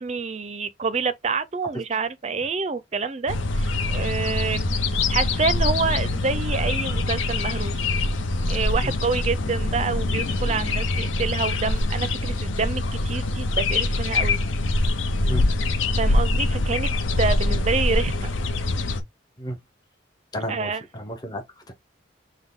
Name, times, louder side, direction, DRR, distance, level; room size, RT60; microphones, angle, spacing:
voice 1, 0.0-4.7 5.1-7.8 8.4-14.4 16.0-16.9 17.2-18.3 20.5-20.8, right 4 dB, 35° right, 0.4 m, -27 dB
sound 1, 3.3-19.0, left 2 dB, 80° left, 0.7 m, -24 dB
voice 2, 15.2-15.8 19.4-19.6 20.3-21.7, equal, 20° left, 0.6 m, -33 dB
6.0 x 2.1 x 3.6 m
head